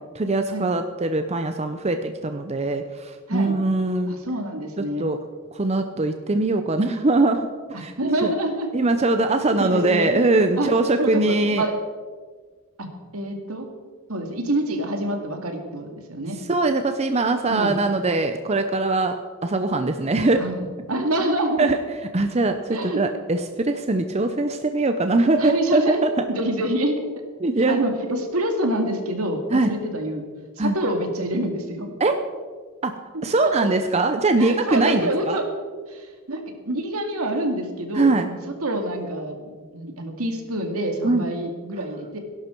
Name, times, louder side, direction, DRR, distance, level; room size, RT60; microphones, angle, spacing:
voice 1, 0.2-4.1 4.8-5.2 5.5-7.9 8.2-8.3 8.7-11.6 16.5-19.2 19.4-20.4 21.2-21.8 22.1-26.1 27.4-27.8 29.5-29.7 30.6-30.7 32.0-32.1 32.8-32.9 33.2-35.4 38.0-38.3 41.0-41.2, right 2 dB, 30° right, 7 dB, 0.6 m, -22 dB
voice 2, 4.1-5.1 5.9-6.1 7.7-8.7 9.5-10.2 10.6-10.7 11.0-11.7 12.8-12.9 13.1-13.7 14.1-16.4 17.5-17.7 20.3-21.7 22.7-23.0 25.4-27.1 27.7-30.3 30.6-31.9 33.1-33.7 34.4-35.5 35.9-42.2, right 1 dB, 75° right, 4 dB, 2.3 m, -27 dB
18.0 x 11.5 x 4.6 m, 1.5 s
head